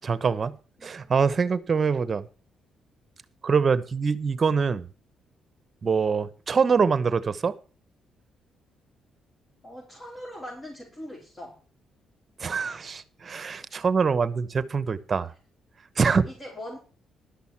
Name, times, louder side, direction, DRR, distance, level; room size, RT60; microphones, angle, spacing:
voice 1, 0.1-0.5 0.8-2.2 3.4-4.9 5.8-7.5 12.4-15.3 16.0-16.3, right 5 dB, 40° right, 15 dB, 1.0 m, -24 dB
voice 2, 0.8-1.2 9.6-11.6 16.1-16.8, left 1 dB, 25° left, -2 dB, 4.5 m, -41 dB
12.0 x 6.2 x 7.3 m, 0.37 s
cardioid pair, 90°, 0 cm